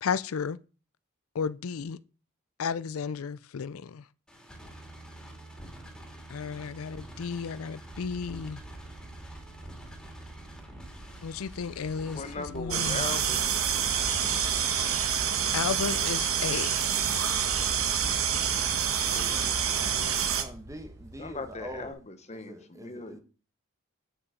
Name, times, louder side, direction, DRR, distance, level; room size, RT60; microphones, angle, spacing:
voice 1, 0.0-0.6 1.3-2.0 2.6-4.0 6.3-8.6 11.2-13.0 15.5-16.9, left 6 dB, 80° left, 0.4 m, -33 dB
sound 1, 4.3-12.6, right 1 dB, 5° left, 2.6 m, -47 dB
sound 2, 7.9-21.9, right 2 dB, 55° right, 1.7 m, -46 dB
voice 2, 12.1-13.4 19.1-20.3 21.2-23.2, left 3 dB, 30° left, 1.1 m, -39 dB
sound 3, 12.7-20.4, right 8 dB, 80° right, 1.4 m, -27 dB
voice 3, 20.4-21.9 22.3-23.2, right 1 dB, 15° right, 1.3 m, -44 dB
9.1 x 7.0 x 5.1 m
head